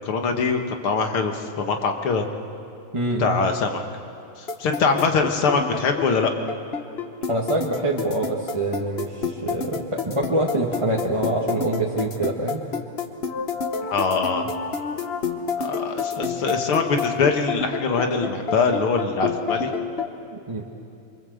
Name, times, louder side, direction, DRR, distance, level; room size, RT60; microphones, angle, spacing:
voice 1, 0.0-2.3 3.2-3.8 4.4-6.3 13.8-14.5 15.6-19.7, left 4 dB, 85° left, 4 dB, 2.6 m, -23 dB
sound 1, 4.5-20.1, left 5 dB, 35° left, 1.2 m, -28 dB
voice 2, 7.3-12.6 16.2-16.3 20.3-20.7, right 1 dB, 15° right, -3 dB, 1.4 m, -25 dB
26.0 x 24.0 x 8.0 m, 2.6 s
omnidirectional pair, 2.3 m